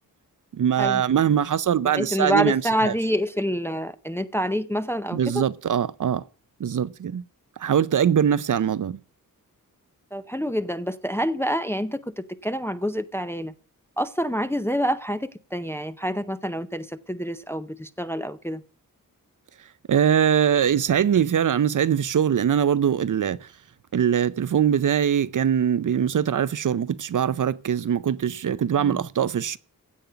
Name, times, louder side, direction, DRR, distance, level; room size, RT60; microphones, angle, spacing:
voice 1, 0.5-2.9 5.1-6.2 6.6-7.2 7.6-9.0 19.9-23.5 23.9-29.6, right 9 dB, 60° right, 0.6 m, -22 dB
voice 2, 1.8-5.4 10.1-13.5 14.0-18.6 28.8-29.0, equal, 5° left, 0.5 m, -27 dB
16.0 x 5.4 x 9.3 m
wide cardioid pair, 165°, 34 cm